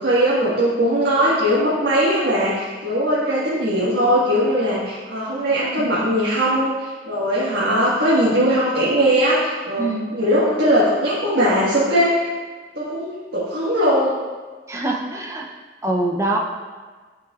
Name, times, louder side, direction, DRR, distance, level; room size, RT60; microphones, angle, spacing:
voice 1, 0.0-9.9 10.1-12.3 12.7-14.2, equal, 70° right, -9 dB, 1.6 m, -19 dB
voice 2, 9.8-10.1 14.7-15.5 15.8-16.4, right 2 dB, 15° right, -1 dB, 0.6 m, -24 dB
11.0 x 6.1 x 2.4 m, 1.4 s
head